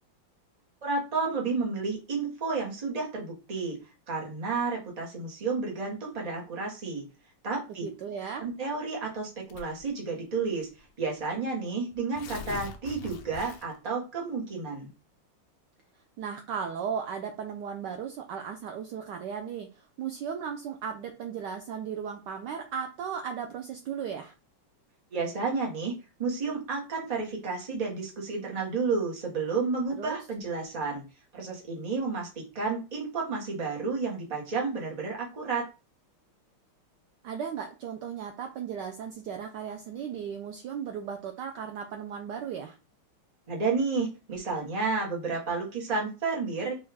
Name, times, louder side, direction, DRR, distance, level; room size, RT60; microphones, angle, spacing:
voice 1, 0.8-3.8 4.1-7.0 7.4-7.9 8.4-10.7 11.0-14.9 25.1-25.9 26.2-31.0 31.3-35.7 43.5-46.7, right 4 dB, 30° right, -1 dB, 0.7 m, -31 dB
voice 2, 7.8-8.5 16.2-24.3 30.0-30.2 37.2-42.8, right 7 dB, 80° right, 4 dB, 0.9 m, -36 dB
Tearing, 9.5-9.9 10.8-10.9 11.2-11.3 11.9-13.9, left 6 dB, 85° left, 1.5 m, -42 dB
5.3 x 2.3 x 3.4 m, 0.31 s
omnidirectional pair, 2.4 m